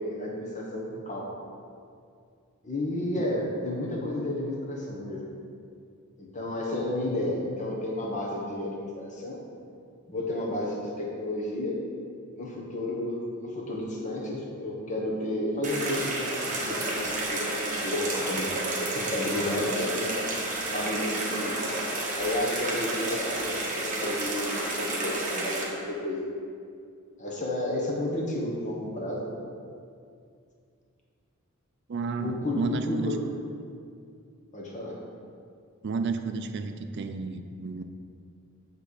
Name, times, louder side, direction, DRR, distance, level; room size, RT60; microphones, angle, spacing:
voice 1, 0.0-1.5 2.6-5.3 6.2-9.4 10.1-11.8 12.3-18.5 18.8-20.3 20.6-21.7 22.1-26.2 27.2-29.2 32.2-33.1 34.5-35.0, left 1 dB, 35° left, -2 dB, 1.2 m, -32 dB
sound 1, 15.6-25.6, right 2 dB, 35° right, 1.3 m, -31 dB
voice 2, 31.9-33.2 35.8-37.8, right 4 dB, 50° right, 6 dB, 0.4 m, -32 dB
8.0 x 3.4 x 6.4 m, 2.3 s
head